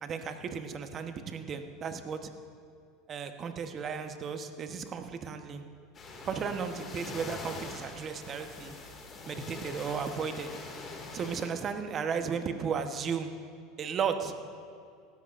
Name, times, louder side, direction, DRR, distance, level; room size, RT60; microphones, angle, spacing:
voice 1, 0.0-2.3 3.1-5.6 6.2-8.7 9.3-10.5 11.1-13.4 13.8-14.4, right 6 dB, 40° right, 7 dB, 1.0 m, -35 dB
sound 1, 5.9-11.5, left 3 dB, 35° left, 2.2 m, -43 dB
17.5 x 13.0 x 2.6 m, 2.4 s
hypercardioid pair, 95°, 0 cm